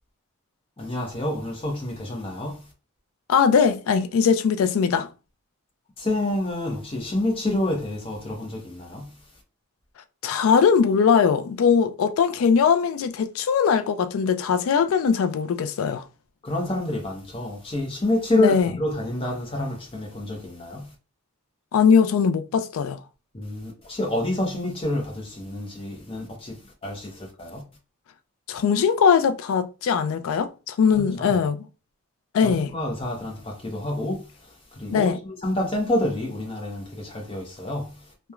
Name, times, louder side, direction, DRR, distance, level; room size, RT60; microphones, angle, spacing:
voice 1, 0.8-2.6 6.0-9.1 16.4-20.9 23.3-27.6 30.9-31.3 32.4-38.0, left 1 dB, 25° left, 0.7 m, -28 dB
voice 2, 3.3-5.1 10.2-16.0 18.4-18.7 21.7-23.0 28.5-31.7 32.3-32.7 34.9-35.2, left 6 dB, 70° left, 0.3 m, -20 dB
2.9 x 2.2 x 2.3 m
head